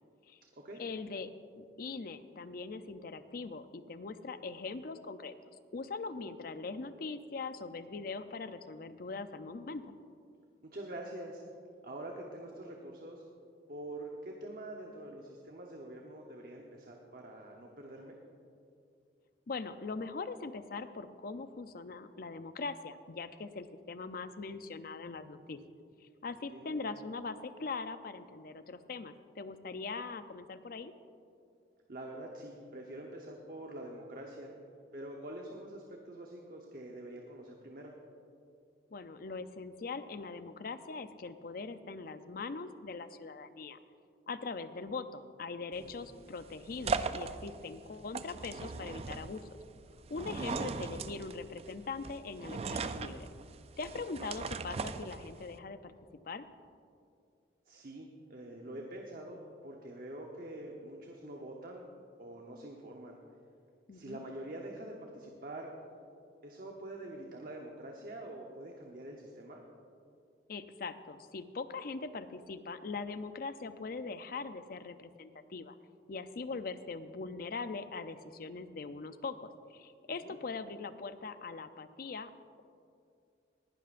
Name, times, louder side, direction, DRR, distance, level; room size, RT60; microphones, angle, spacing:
voice 1, 0.8-1.3 1.6-5.3 5.7-9.9 19.5-25.6 26.0-30.9 38.9-43.8 44.3-49.4 50.1-53.3 53.8-55.9 56.2-56.5 63.9-64.2 70.5-75.8 76.1-82.3, left 4 dB, 55° left, 11 dB, 0.5 m, -41 dB
voice 2, 10.6-11.4 11.8-13.3 13.7-18.1 26.5-26.8 31.9-34.5 34.9-37.9 45.8-46.2 50.4-50.9 57.7-61.9 62.2-63.2 63.9-65.7 66.4-69.6 80.1-80.4, right 1 dB, 50° right, 0 dB, 0.9 m, -45 dB
sound 1, 45.7-55.6, right 4 dB, 35° right, 0.3 m, -39 dB
19.0 x 11.5 x 2.5 m, 2.4 s
head